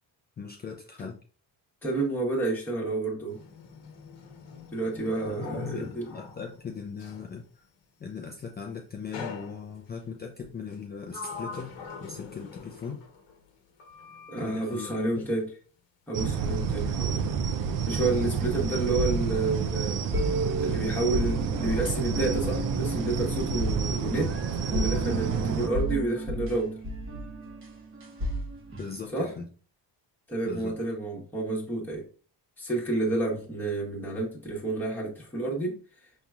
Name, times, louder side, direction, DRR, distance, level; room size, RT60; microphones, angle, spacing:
voice 1, 0.4-1.2 5.3-7.4 8.0-11.7 12.0-13.0 14.4-15.1 28.8-29.5 30.4-30.7, left 5 dB, 25° left, 0 dB, 0.4 m, -39 dB
voice 2, 1.8-3.4 4.7-6.1 14.3-15.5 16.1-17.3 17.9-20.0 20.6-24.3 24.7-26.8 29.1-29.3 30.3-32.0 32.6-35.7, right 2 dB, 5° left, -4 dB, 1.2 m, -30 dB
Sliding door, 3.3-7.3 9.1-10.0 10.7-13.5 13.8-15.1, left 5 dB, 80° left, 1.1 m, -44 dB
sound 1, 16.1-25.7, right 6 dB, 50° right, 0.5 m, -30 dB
sound 2, 18.7-29.1, right 1 dB, 30° right, 1.0 m, -33 dB
5.3 x 2.9 x 2.3 m, 0.40 s
cardioid pair, 140°, 43 cm